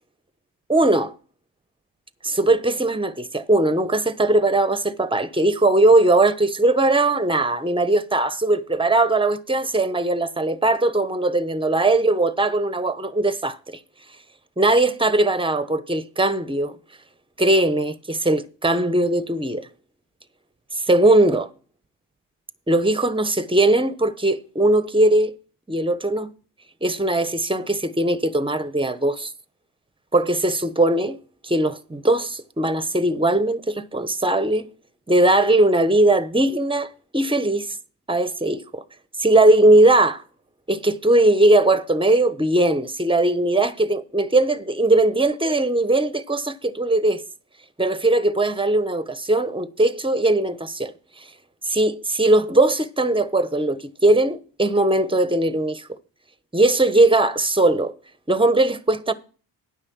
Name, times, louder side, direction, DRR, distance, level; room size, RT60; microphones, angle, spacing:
voice 1, 0.7-1.1 2.2-13.8 14.6-16.7 17.4-19.7 20.9-21.5 22.7-25.3 25.7-26.3 26.8-29.3 30.1-31.2 31.4-34.7 35.1-37.8 38.1-38.8 39.2-40.2 40.7-47.2 47.8-50.9 51.7-55.9 56.5-57.9 58.3-59.1, right 2 dB, 10° right, 1.0 m, -19 dB
9.9 x 6.3 x 6.2 m
cardioid pair, 70°, 44 cm